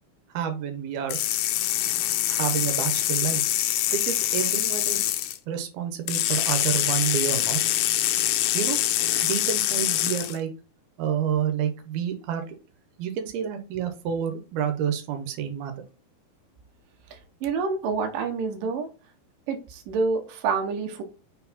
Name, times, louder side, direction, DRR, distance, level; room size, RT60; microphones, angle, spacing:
voice 1, 0.3-1.2 2.3-3.4 3.9-5.1 5.5-7.6 8.5-10.5 11.0-12.6 13.0-15.8, right 9 dB, 90° right, 7 dB, 3.0 m, -29 dB
sound 1, 1.1-5.4 6.1-10.4, left 13 dB, 80° left, 2.5 m, -25 dB
voice 2, 17.1-18.9 19.5-21.0, right 4 dB, 70° right, 5 dB, 2.6 m, -28 dB
6.2 x 4.7 x 4.2 m, 0.32 s
omnidirectional pair, 4.3 m